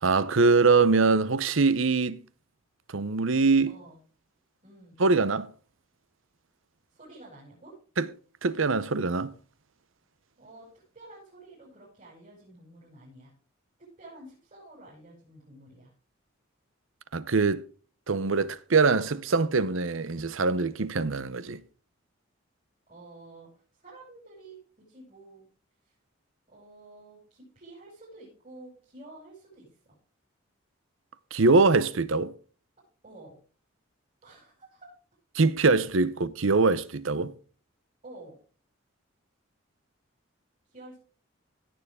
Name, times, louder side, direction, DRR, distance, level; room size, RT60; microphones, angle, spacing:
voice 1, 0.0-2.2 2.9-3.8 5.0-5.5 8.0-8.1 8.4-9.3 17.1-17.6 18.1-21.6 31.3-32.3 35.3-37.3, right 4 dB, 75° right, 0.8 m, -23 dB
voice 2, 3.7-4.0 4.6-5.0 6.9-7.8 10.4-13.3 13.8-15.9 22.9-25.5 26.5-30.0 33.0-33.4 34.2-34.9 38.0-38.4 40.7-41.0, right 2 dB, 35° right, 5.8 m, -50 dB
16.5 x 7.1 x 3.6 m
head